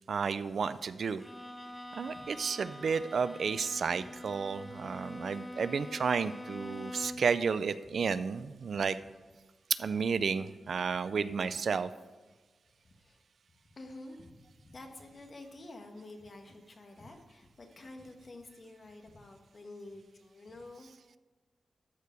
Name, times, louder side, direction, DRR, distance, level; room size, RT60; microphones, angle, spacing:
voice 1, 0.1-1.2 1.9-9.0 9.8-11.9, right 5 dB, 60° right, 14 dB, 0.4 m, -32 dB
Bowed string instrument, 1.2-7.4, left 1 dB, 10° left, 0.4 m, -45 dB
voice 2, 12.8-13.2 13.7-20.9, left 2 dB, 40° left, 4 dB, 1.2 m, -49 dB
13.0 x 4.7 x 5.1 m, 1.3 s
wide cardioid pair, 165°, 0 cm